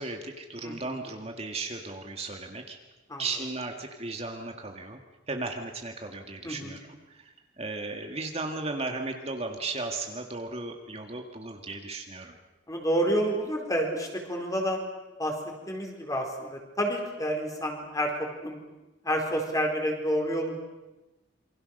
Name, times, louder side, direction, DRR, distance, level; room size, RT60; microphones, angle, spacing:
voice 1, 0.0-2.8 3.2-5.0 5.3-12.4, right 3 dB, 35° right, 3 dB, 1.8 m, -36 dB
voice 2, 0.6-1.0 3.1-3.2 6.4-6.8 12.7-14.8 15.2-15.4 15.7-18.6 19.0-20.6, equal, 20° left, 2 dB, 4.5 m, -29 dB
27.5 x 24.5 x 6.6 m, 1.1 s
head